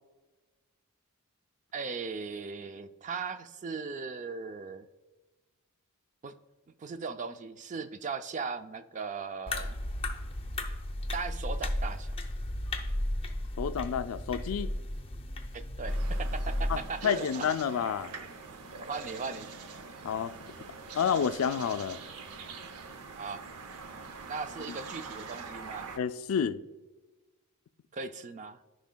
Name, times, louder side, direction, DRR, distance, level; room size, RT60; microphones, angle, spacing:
voice 1, 1.7-4.9 6.2-6.4 6.8-9.8 11.1-12.2 15.5-17.5 18.8-19.5 23.2-23.4 24.3-25.9 27.9-28.6, right 5 dB, 35° right, 0.4 m, -38 dB
sound 1, 9.5-16.8, left 1 dB, 25° left, 0.6 m, -34 dB
voice 2, 13.6-14.7 16.7-18.1 20.0-20.3 20.9-22.0 26.0-26.6, left 7 dB, 70° left, 0.4 m, -29 dB
sound 2, 15.9-26.0, right 4 dB, 85° right, 0.7 m, -44 dB
14.0 x 5.0 x 2.2 m
head